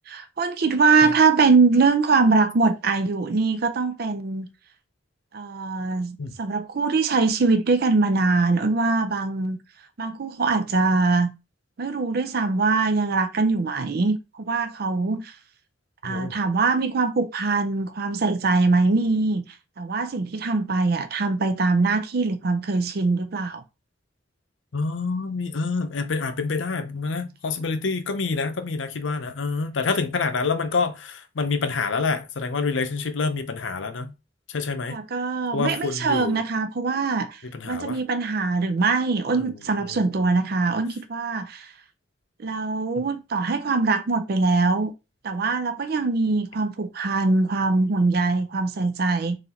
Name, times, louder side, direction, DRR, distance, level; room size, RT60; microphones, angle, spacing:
voice 1, 0.1-4.5 5.3-9.6 10.0-11.3 11.8-15.3 16.0-19.4 19.8-23.6 34.9-41.7 42.4-44.9 45.2-49.4, right 3 dB, 55° right, 0.5 m, -22 dB
voice 2, 24.7-34.1 34.5-35.0 35.5-36.4 37.5-38.0 39.4-39.5 39.9-40.0 43.0-43.1, left 4 dB, 85° left, 0.6 m, -27 dB
3.9 x 3.2 x 2.9 m
head